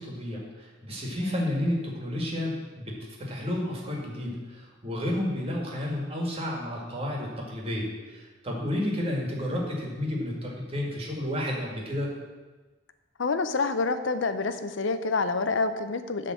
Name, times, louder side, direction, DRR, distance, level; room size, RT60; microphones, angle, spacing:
voice 1, 0.0-12.1, left 1 dB, 30° right, -2 dB, 2.0 m, -31 dB
voice 2, 13.2-16.3, left 3 dB, 80° left, 10 dB, 0.6 m, -27 dB
11.0 x 3.9 x 7.6 m, 1.3 s
head